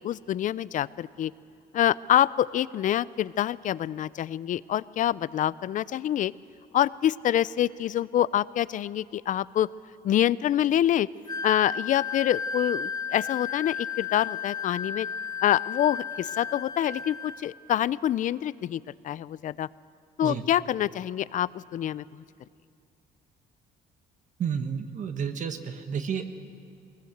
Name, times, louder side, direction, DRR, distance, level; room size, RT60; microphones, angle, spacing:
voice 1, 0.0-1.3 1.7-6.3 6.7-9.7 10.0-11.1 11.4-15.1 15.4-19.7 20.2-22.0, left 11 dB, 50° left, 20 dB, 0.5 m, -26 dB
Wind instrument woodwind instrument, 11.3-17.4, left 6 dB, 25° left, 1.5 m, -34 dB
voice 2, 24.4-26.3, right 7 dB, 50° right, 7 dB, 1.3 m, -31 dB
20.5 x 19.0 x 7.9 m, 2.4 s
cardioid pair, 110°, 17 cm